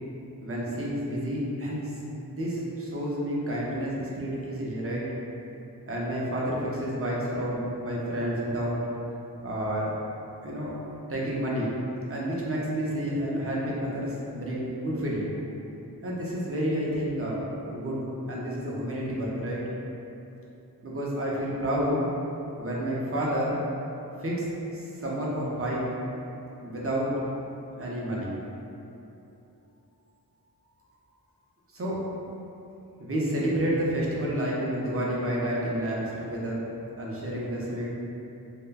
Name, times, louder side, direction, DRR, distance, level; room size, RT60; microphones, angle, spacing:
voice 1, 0.4-1.9 2.2-5.0 5.9-8.8 9.4-9.9 10.4-10.8 11.1-11.7 12.1-15.3 16.0-19.6 20.8-22.1 22.6-23.6 24.2-25.9 26.6-27.1 27.8-28.4 31.7-32.0 33.0-36.7 37.0-37.9, equal, 35° right, -5 dB, 0.5 m, -30 dB
3.3 x 2.1 x 2.3 m, 2.9 s
wide cardioid pair, 120°, 40 cm